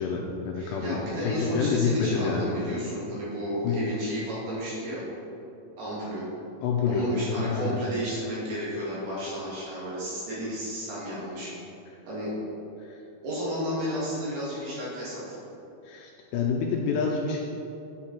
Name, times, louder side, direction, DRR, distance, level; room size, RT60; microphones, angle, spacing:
voice 1, 0.0-2.5 3.6-3.9 6.6-7.8 12.8-13.0 15.8-17.4, left 5 dB, 85° left, 0 dB, 2.5 m, -28 dB
voice 2, 0.6-5.0 5.8-6.2 6.9-11.5 12.1-12.3 13.2-15.4, equal, 60° right, -8 dB, 4.1 m, -32 dB
9.2 x 7.6 x 4.4 m, 2.8 s
omnidirectional pair, 5.5 m